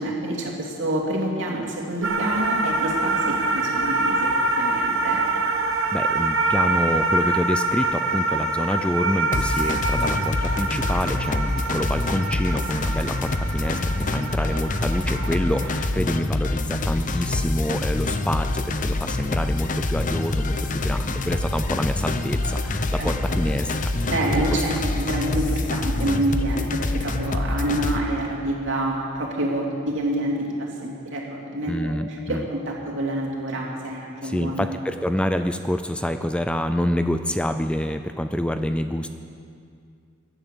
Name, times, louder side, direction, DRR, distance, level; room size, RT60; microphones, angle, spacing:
voice 1, 0.0-5.3 23.0-23.4 24.1-34.7, right 1 dB, 65° right, -1 dB, 2.9 m, -27 dB
sound 1, 2.0-15.9, right 2 dB, 85° right, 1.2 m, -25 dB
voice 2, 5.9-24.6 31.7-32.5 34.2-39.1, left 1 dB, 5° left, 8 dB, 0.4 m, -27 dB
sound 2, 9.3-28.0, left 2 dB, 40° left, 0.7 m, -26 dB
16.5 x 11.0 x 6.9 m, 2.3 s
head